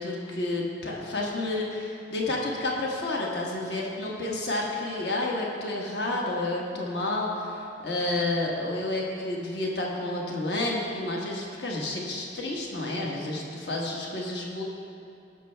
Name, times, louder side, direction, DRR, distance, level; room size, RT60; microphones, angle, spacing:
voice 1, 0.0-14.6, left 2 dB, 70° left, -2 dB, 1.4 m, -30 dB
16.0 x 6.8 x 3.4 m, 2.5 s
head